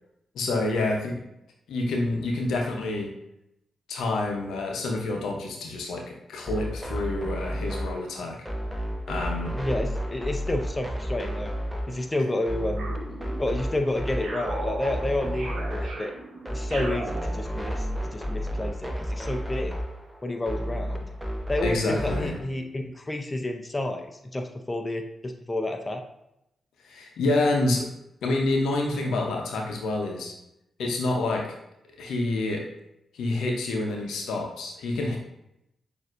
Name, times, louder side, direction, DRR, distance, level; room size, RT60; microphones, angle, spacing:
voice 1, 0.3-1.2 1.7-3.1 3.9-8.4 9.1-9.5 21.6-22.4 26.8-27.9 28.2-30.3 30.8-31.5 32.0-32.7 33.1-35.2, left 2 dB, 80° left, 1 dB, 0.7 m, -27 dB
sound 1, 6.5-22.4, equal, 5° right, 0.8 m, -32 dB
voice 2, 9.6-11.5 11.9-12.9 13.4-16.1 16.5-19.8 20.2-21.1 21.5-26.0, left 1 dB, 25° left, 4 dB, 0.5 m, -30 dB
sound 2, 12.7-13.7 14.2-17.9, right 2 dB, 75° right, 1.0 m, -36 dB
6.3 x 2.6 x 2.5 m, 0.83 s
supercardioid pair, 40°, 0 cm